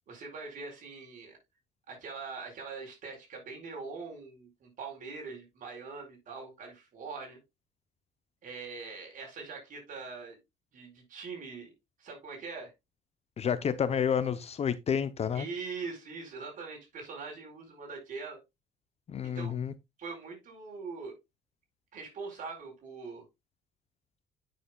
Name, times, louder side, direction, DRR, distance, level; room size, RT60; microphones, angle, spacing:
voice 1, 0.1-1.4 1.9-7.4 8.4-10.4 10.7-11.7 12.0-12.7 15.3-18.4 19.2-19.5 20.0-21.2 21.9-23.2, right 4 dB, 50° right, 4.6 m, -42 dB
voice 2, 13.4-15.5 19.1-19.7, left 7 dB, 40° left, 0.7 m, -30 dB
9.1 x 6.4 x 2.2 m
cardioid pair, 110°, 17 cm